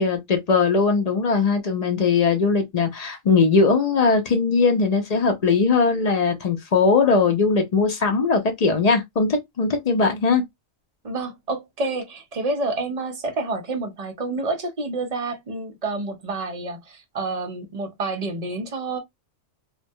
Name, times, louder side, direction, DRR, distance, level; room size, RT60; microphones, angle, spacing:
voice 1, 0.0-10.4, left 4 dB, 55° left, 0.4 m, -20 dB
voice 2, 11.0-19.0, right 3 dB, 45° right, 0.5 m, -28 dB
2.2 x 2.1 x 2.6 m
omnidirectional pair, 1.2 m